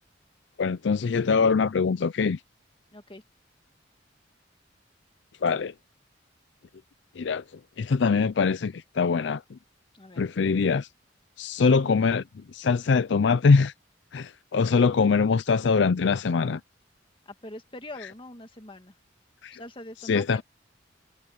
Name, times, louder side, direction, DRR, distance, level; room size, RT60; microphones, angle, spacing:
voice 1, 0.6-2.4 5.4-5.7 7.2-7.4 7.8-9.6 10.2-10.9 11.4-12.2 12.5-13.7 14.1-16.6 19.4-19.6 20.0-20.4, left 5 dB, 65° left, 0.5 m, -23 dB
voice 2, 2.9-3.2 9.9-10.3 17.3-19.0 19.5-20.4, left 1 dB, 30° left, 2.0 m, -43 dB
head